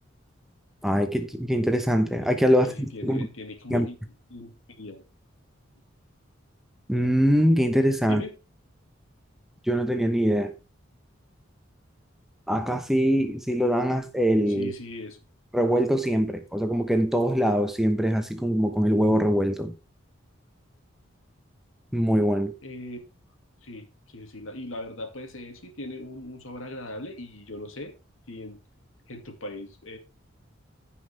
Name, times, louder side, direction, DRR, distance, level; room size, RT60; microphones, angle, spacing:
voice 1, 0.8-3.3 3.7-3.9 6.9-8.2 9.7-10.5 12.5-14.7 15.5-19.7 21.9-22.5, equal, ahead, 0.9 m, -23 dB
voice 2, 2.5-4.0 4.3-5.0 8.0-8.3 14.5-15.2 22.6-23.0 23.6-27.9 28.3-28.6 29.1-30.0, left 1 dB, 80° left, 2.4 m, -39 dB
15.5 x 5.7 x 3.4 m
head